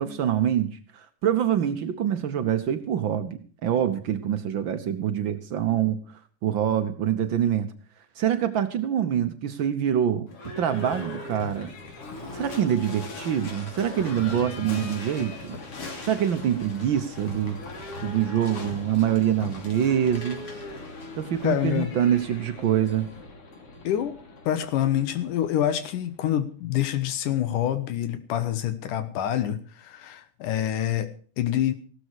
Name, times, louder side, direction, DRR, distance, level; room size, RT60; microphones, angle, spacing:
voice 1, 0.0-6.0 6.4-7.7 8.2-10.3 10.6-11.7 12.3-15.6 16.0-17.6 18.0-20.4 21.2-23.1, right 9 dB, 80° right, 10 dB, 1.1 m, -25 dB
Livestock farm animals working animals / Bell, 10.3-26.2, left 2 dB, 45° left, 3.6 m, -39 dB
voice 2, 21.4-21.9 23.8-24.1 24.5-31.1 31.4-31.7, left 11 dB, 85° left, 11 dB, 2.7 m, -26 dB
16.5 x 13.0 x 4.7 m, 0.42 s
omnidirectional pair, 3.6 m